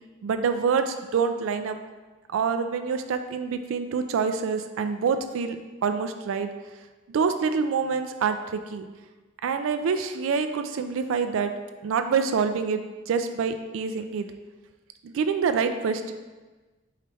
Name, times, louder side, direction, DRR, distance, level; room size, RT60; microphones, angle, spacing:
voice 1, 0.2-1.8 2.3-5.6 5.8-6.5 7.1-8.9 9.4-11.5 11.8-14.3 15.0-16.1, right 5 dB, 70° right, 9 dB, 0.3 m, -26 dB
4.7 x 3.0 x 3.4 m, 1.2 s
head